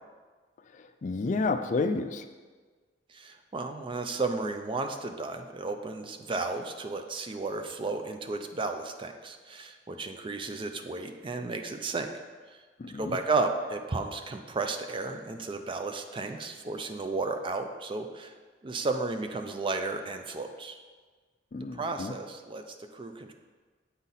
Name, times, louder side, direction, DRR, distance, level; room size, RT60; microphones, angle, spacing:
voice 1, 1.0-2.2 12.8-13.2 21.5-22.1, left 3 dB, 40° left, 8 dB, 0.4 m, -30 dB
voice 2, 3.1-12.1 12.5-12.6 12.9-18.4 18.6-20.8 21.7-23.3, right 3 dB, 30° right, 6 dB, 0.4 m, -33 dB
8.1 x 4.1 x 4.0 m, 1.4 s
head